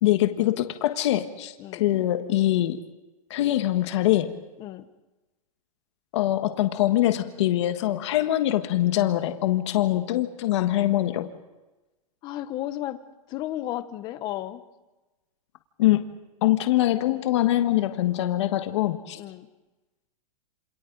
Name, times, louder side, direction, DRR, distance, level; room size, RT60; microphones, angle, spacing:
voice 1, 0.0-2.8 3.3-4.4 6.1-11.3 15.8-16.1 16.4-19.2, left 14 dB, 50° left, 8 dB, 1.5 m, -23 dB
voice 2, 12.2-13.0 13.3-14.6 19.2-19.5, left 13 dB, 20° left, 12 dB, 1.0 m, -33 dB
27.5 x 27.5 x 4.0 m, 1.1 s
hypercardioid pair, 165°, 19 cm